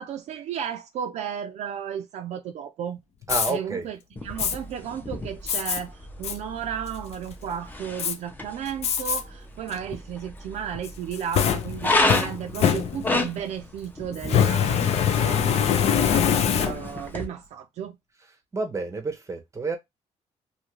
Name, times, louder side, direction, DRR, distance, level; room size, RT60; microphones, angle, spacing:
voice 1, 0.0-3.0 3.5-4.0 4.2-18.0, right 8 dB, 70° right, 0.4 m, -34 dB
Fire, 3.2-3.5 4.4-4.6 5.5-5.8 6.2-6.4 6.9-7.3 8.0-8.1 8.8-9.2 9.7-9.8 10.8-13.3 14.2-17.1, left 8 dB, 60° left, 0.4 m, -24 dB
voice 2, 3.3-3.9 18.5-19.8, right 3 dB, 25° right, 0.7 m, -29 dB
sound 1, 4.2-17.2, left 2 dB, 15° left, 0.6 m, -32 dB
2.7 x 2.4 x 3.0 m
cardioid pair, 110°, 12 cm